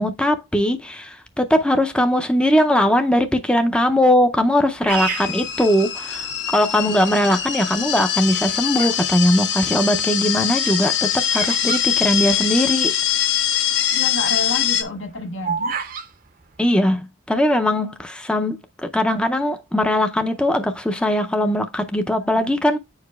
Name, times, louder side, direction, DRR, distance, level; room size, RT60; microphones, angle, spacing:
voice 1, 0.0-12.9 16.6-22.8, left 1 dB, 5° left, 0.4 m, -20 dB
Bird vocalization bird call bird song, 4.8-6.3 7.0-7.4 8.2-9.1 9.4-12.8 13.1-13.2 13.4-13.7 14.2-16.1, right 6 dB, 45° right, 0.6 m, -30 dB
sound 1, 4.9-14.8, left 9 dB, 60° left, 0.8 m, -23 dB
voice 2, 13.9-15.7 22.2-22.6, left 2 dB, 75° left, 1.2 m, -29 dB
8.6 x 4.8 x 2.3 m
head